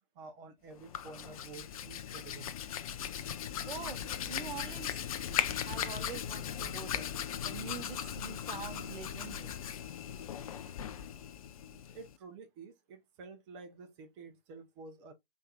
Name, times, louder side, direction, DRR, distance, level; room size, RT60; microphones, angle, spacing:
voice 1, 0.1-2.5 11.6-15.1, right 4 dB, 30° right, 1.0 m, -50 dB
Hands, 0.7-12.2, left 9 dB, 40° left, 0.4 m, -38 dB
voice 2, 3.6-4.0 4.2-4.9 5.7-7.1 7.4-9.5, right 6 dB, 60° right, 1.0 m, -44 dB
4.5 x 2.8 x 2.4 m
hypercardioid pair, 135°, 29 cm